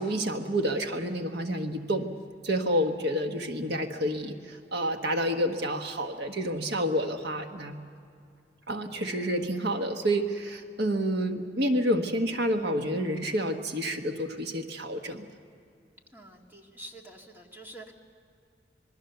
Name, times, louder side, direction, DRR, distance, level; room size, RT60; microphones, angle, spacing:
voice 1, 0.0-2.1 2.4-7.8 8.7-15.3, equal, 70° right, 5 dB, 1.4 m, -29 dB
voice 2, 16.1-17.9, right 1 dB, 10° right, 1 dB, 2.2 m, -47 dB
26.5 x 21.5 x 6.9 m, 2.4 s
head